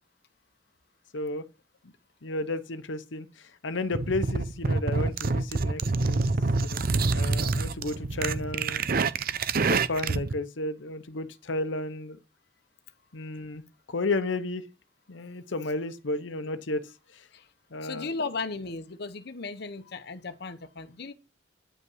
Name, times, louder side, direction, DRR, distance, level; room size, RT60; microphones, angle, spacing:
voice 1, 1.1-1.4 2.2-6.2 6.6-6.8 7.1-8.9 9.6-12.2 13.1-13.6 13.9-14.6 15.1-17.3 17.7-18.1, left 2 dB, 90° left, 0.9 m, -33 dB
sound 1, 3.9-10.3, right 3 dB, 50° right, 0.6 m, -26 dB
voice 2, 17.8-21.1, left 4 dB, 60° left, 0.9 m, -36 dB
9.8 x 5.5 x 5.6 m
head